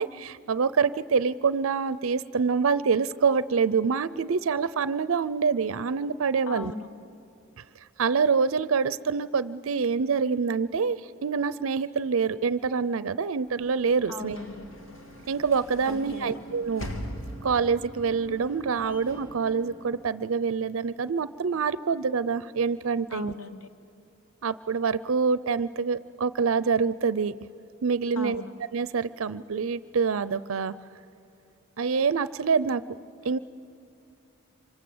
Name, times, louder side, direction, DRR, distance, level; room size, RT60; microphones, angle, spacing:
voice 1, 0.0-6.7 8.0-14.4 15.3-16.9 17.4-23.3 24.4-27.3 27.8-28.4 28.7-30.7 31.8-32.8 33.2-33.4, right 5 dB, 75° right, 16 dB, 0.5 m, -26 dB
voice 2, 6.5-6.9 14.1-14.7 15.9-16.4 23.1-23.7 28.1-28.5, left 3 dB, 90° left, 10 dB, 1.4 m, -37 dB
Sliding door / Slam, 13.4-20.4, equal, 70° left, 2.8 m, -42 dB
26.5 x 25.0 x 7.9 m, 2.7 s
head